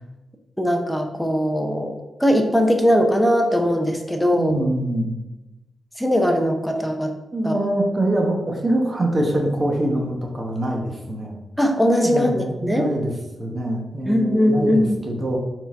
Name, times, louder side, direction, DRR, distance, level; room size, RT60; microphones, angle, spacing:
voice 1, 0.6-1.9 2.2-4.6 6.0-7.1 7.4-7.5 11.6-12.9 14.0-15.0, equal, ahead, 3 dB, 0.6 m, -20 dB
voice 2, 4.4-5.2 7.3-11.3 12.0-13.1 13.4-15.4, right 1 dB, 25° right, 1 dB, 0.9 m, -24 dB
4.8 x 3.9 x 5.1 m, 1.0 s
wide cardioid pair, 170°, 0 cm